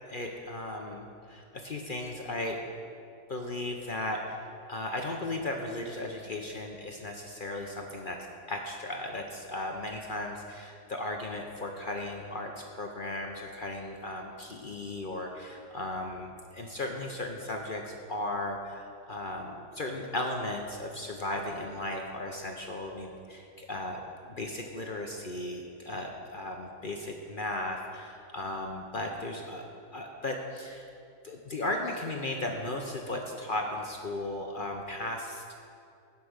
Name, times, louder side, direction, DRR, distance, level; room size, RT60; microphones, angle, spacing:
voice 1, 0.1-2.6 3.3-4.4 4.7-8.2 8.5-24.0 24.4-29.6 29.9-30.9 31.2-35.4, left 1 dB, 50° left, 2 dB, 0.6 m, -36 dB
16.0 x 5.9 x 6.5 m, 2.5 s
omnidirectional pair, 2.0 m